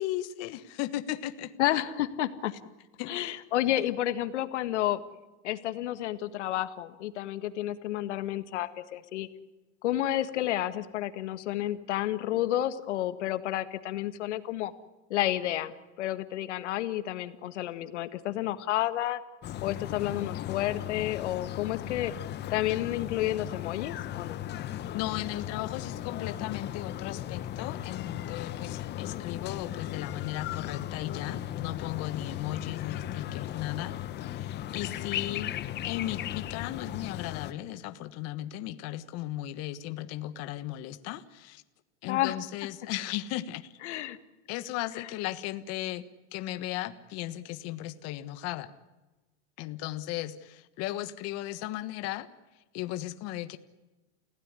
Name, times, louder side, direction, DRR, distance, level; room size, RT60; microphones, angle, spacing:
voice 1, 0.0-1.5 3.0-3.4 24.9-35.6 35.8-41.6 42.0-43.7 44.5-46.0 46.3-48.7 49.6-52.3 52.7-53.6, left 14 dB, 45° left, 11 dB, 1.4 m, -36 dB
voice 2, 1.6-2.5 3.1-5.0 5.4-9.3 9.8-14.7 15.1-19.2 19.6-22.1 22.5-24.4 42.1-42.4 43.8-44.2, left 13 dB, 80° left, 11 dB, 1.8 m, -30 dB
sound 1, 19.4-37.5, left 12 dB, 30° left, 1.2 m, -37 dB
29.5 x 16.5 x 9.9 m, 1.1 s
supercardioid pair, 135°, 35 cm